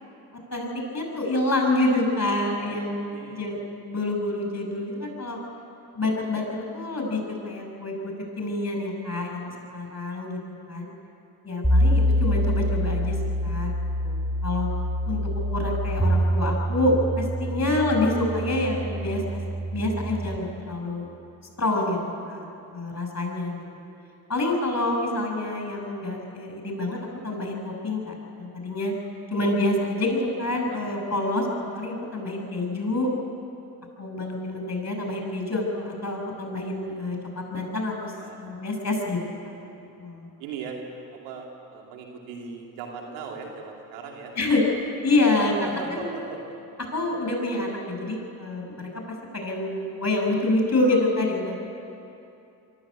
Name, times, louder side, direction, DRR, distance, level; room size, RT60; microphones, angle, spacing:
voice 1, 0.5-3.6 3.8-5.4 5.9-10.4 10.7-10.9 11.4-13.2 13.4-13.8 14.0-14.7 15.1-15.2 15.5-19.4 19.7-21.1 21.6-22.0 22.2-23.6 24.3-27.0 27.2-28.9 29.3-31.5 31.7-33.1 34.0-37.2 37.5-38.1 38.4-39.2 39.4-39.5 40.0-40.3 44.4-44.6 45.0-45.5 45.9-46.0 46.9-48.9 49.3-51.5, left 2 dB, 35° left, 2 dB, 6.8 m, -27 dB
voice 2, 2.5-3.8 9.3-9.6 30.6-30.8 38.1-38.4 38.8-39.0 39.5-39.7 40.4-40.8 41.1-44.3 45.5-46.5, right 5 dB, 90° right, 0 dB, 2.7 m, -39 dB
sound 1, 11.6-20.4, equal, 5° left, 2.9 m, -25 dB
23.0 x 13.5 x 8.6 m, 2.7 s
supercardioid pair, 50°, 43 cm